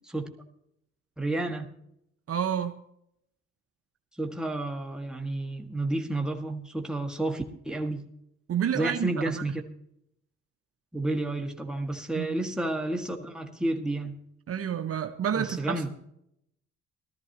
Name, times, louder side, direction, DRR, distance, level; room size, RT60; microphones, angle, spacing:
voice 1, 1.2-1.7 4.2-8.0 8.7-9.6 10.9-14.1 15.3-15.9, right 2 dB, ahead, 1.8 m, -31 dB
voice 2, 2.3-2.8 8.5-9.4 12.2-12.4 14.5-15.9, right 9 dB, 50° right, 0.8 m, -29 dB
18.5 x 13.5 x 2.9 m
cardioid pair, 90°, 30 cm